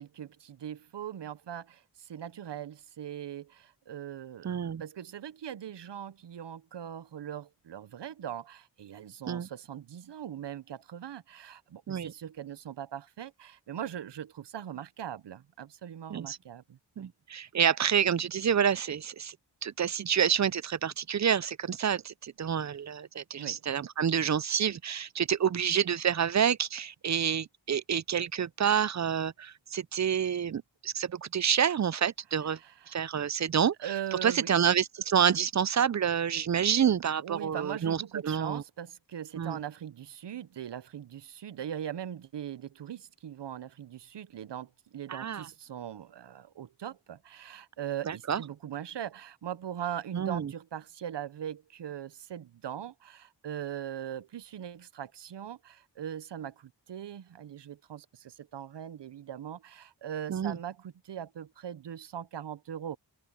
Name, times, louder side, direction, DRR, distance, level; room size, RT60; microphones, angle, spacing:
voice 1, 0.0-4.5 4.8-17.1 23.4-23.6 32.6-32.9 33.8-34.6 37.2-63.0, right 10 dB, 70° right, 0.7 m, -40 dB
voice 2, 4.4-4.8 9.3-9.5 11.9-12.1 16.1-16.4 17.0-19.4 19.6-32.6 32.9-33.9 34.2-38.6 39.4-39.6 45.1-45.5 48.1-48.4 50.1-50.5 60.3-60.6, right 8 dB, 40° right, 0.5 m, -28 dB
wide cardioid pair, 65°, 43 cm